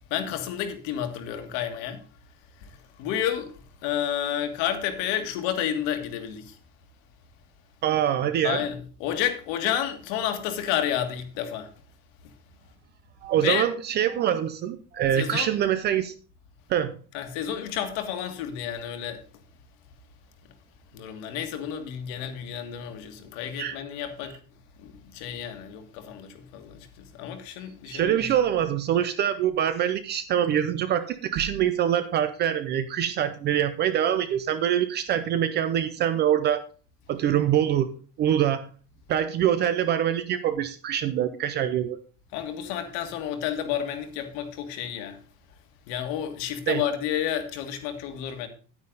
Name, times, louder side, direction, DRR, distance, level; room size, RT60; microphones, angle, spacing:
voice 1, 0.1-2.0 2.6-6.6 8.4-11.7 12.2-12.3 13.4-13.7 15.1-15.5 17.1-19.2 20.9-24.4 24.8-28.3 42.3-45.2 45.9-48.5, left 10 dB, 60° left, 1.9 m, -31 dB
voice 2, 7.8-8.6 13.2-16.1 16.7-17.0 23.6-23.8 27.9-36.6 37.1-38.7 39.1-42.0 46.7-46.8, right 10 dB, 25° right, 0.4 m, -24 dB
9.6 x 9.6 x 3.9 m
cardioid pair, 175°, 41 cm